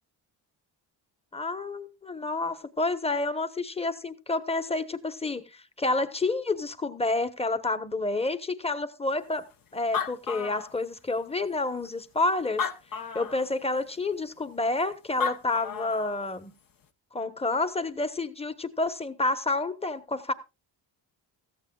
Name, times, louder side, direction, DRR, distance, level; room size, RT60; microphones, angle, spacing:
voice 1, 1.3-9.5 9.7-12.7 13.1-16.5 17.1-20.3, left 2 dB, 15° left, 1.2 m, -29 dB
Animal, 9.5-9.6 9.8-11.2 11.8-11.9 12.5-13.5 14.9-15.0 15.2-16.2, left 6 dB, 50° left, 1.1 m, -32 dB
16.5 x 14.0 x 2.4 m
supercardioid pair, 70°, 45 cm